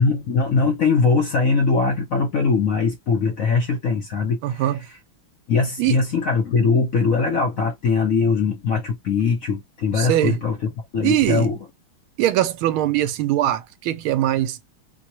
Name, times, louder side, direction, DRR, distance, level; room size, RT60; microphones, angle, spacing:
voice 1, 0.0-4.7 5.5-10.6 10.9-11.6, left 4 dB, 60° left, 0.9 m, -21 dB
voice 2, 4.4-4.8 5.8-6.0 10.0-10.4 11.0-11.5 12.2-14.6, right 13 dB, 80° right, 1.4 m, -21 dB
4.3 x 2.2 x 2.8 m
omnidirectional pair, 2.3 m